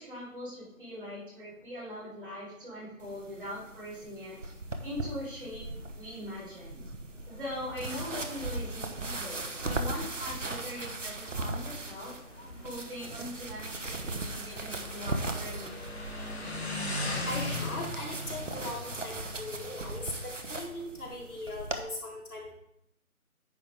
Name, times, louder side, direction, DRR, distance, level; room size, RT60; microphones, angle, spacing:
voice 1, 0.0-4.4 4.8-5.7 5.9-6.8 7.3-12.2 12.6-15.9, left 1 dB, 35° right, -8 dB, 3.7 m, -41 dB
sound 1, 3.0-21.8, right 2 dB, 55° right, 1.0 m, -38 dB
Motorcycle, 7.1-20.0, left 2 dB, 45° left, 1.4 m, -40 dB
voice 2, 17.3-22.5, left 2 dB, 80° left, -4 dB, 3.8 m, -39 dB
9.7 x 6.4 x 3.6 m, 0.73 s
figure-of-eight pair, 175°, 43 cm